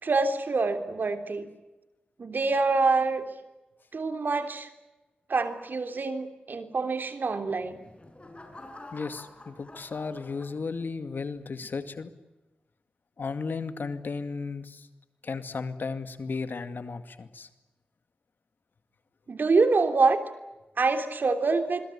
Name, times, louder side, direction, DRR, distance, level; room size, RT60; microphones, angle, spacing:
voice 1, 0.0-1.5 2.2-3.2 3.9-4.7 5.3-7.8 19.3-20.2 20.8-21.8, right 4 dB, 65° right, 8 dB, 3.3 m, -25 dB
sound 1, 7.5-11.1 11.6-12.0, left 2 dB, 35° left, 7.7 m, -48 dB
voice 2, 8.9-12.1 13.2-14.9 15.2-17.5, left 4 dB, 70° left, 10 dB, 2.3 m, -34 dB
27.0 x 22.5 x 8.7 m, 1.0 s
cardioid pair, 45°, 3 cm